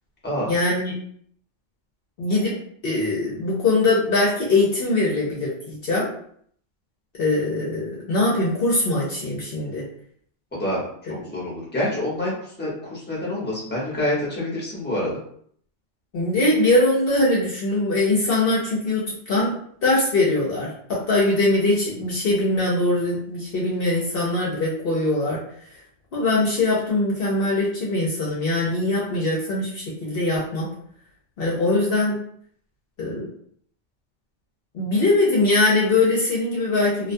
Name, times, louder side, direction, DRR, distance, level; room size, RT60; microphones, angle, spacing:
voice 1, 0.5-0.9 2.2-2.6 2.8-6.1 7.2-9.8 16.1-19.5 19.8-25.4 26.1-30.7 31.4-32.2 33.0-33.3 34.7-37.1, left 2 dB, 60° left, -5 dB, 0.8 m, -22 dB
voice 2, 10.5-10.8 11.1-15.2, left 1 dB, 10° left, -6 dB, 0.8 m, -27 dB
2.4 x 2.2 x 2.6 m, 0.62 s
omnidirectional pair, 1.2 m